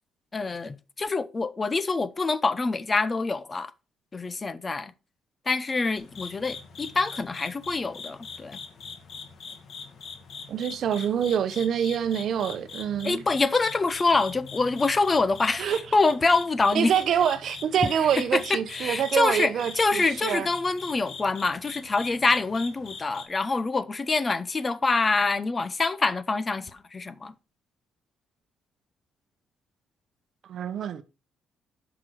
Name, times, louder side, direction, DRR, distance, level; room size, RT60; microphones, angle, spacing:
voice 1, 0.3-3.7 4.1-4.9 5.5-8.6 13.0-17.0 17.8-17.9 18.2-27.3, left 3 dB, 20° left, 0.7 m, -25 dB
sound 1, 6.0-23.3, left 5 dB, 45° left, 2.1 m, -42 dB
voice 2, 10.5-13.2 15.6-15.8 16.7-20.5 30.5-31.0, right 8 dB, 55° right, 1.1 m, -26 dB
10.5 x 6.1 x 4.7 m
cardioid pair, 160°, 0 cm